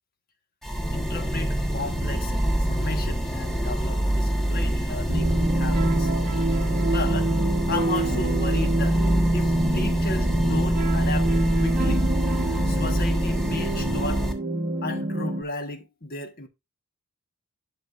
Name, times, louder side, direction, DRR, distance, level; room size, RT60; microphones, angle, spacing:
sound 1, 0.6-14.3, right 1 dB, ahead, 1.3 m, -25 dB
voice 1, 0.9-6.1 6.8-7.3 7.7-9.0 9.3-12.1 12.7-14.3 14.8-16.5, left 3 dB, 40° left, 1.4 m, -34 dB
sound 2, 5.1-15.4, right 1 dB, 40° right, 1.3 m, -26 dB
11.0 x 6.6 x 2.5 m
head